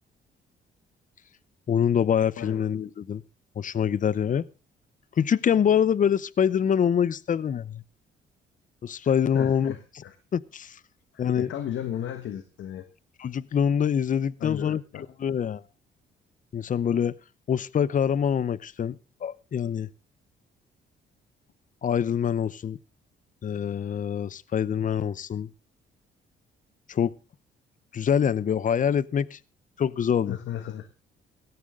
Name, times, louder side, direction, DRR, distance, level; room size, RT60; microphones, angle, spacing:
voice 1, 1.7-3.2 3.6-4.4 5.2-7.8 8.8-9.7 10.3-10.8 11.2-11.5 13.2-14.8 15.2-15.6 16.5-17.1 17.5-19.0 19.2-19.9 21.8-22.8 23.4-25.5 26.9-27.1 27.9-29.4 29.8-30.4, left 8 dB, 40° left, 0.7 m, -25 dB
voice 2, 9.3-10.1 11.1-12.8 14.4-15.0 30.3-30.9, left 10 dB, 75° left, 1.5 m, -35 dB
16.5 x 14.0 x 3.7 m
cardioid pair, 90°, 20 cm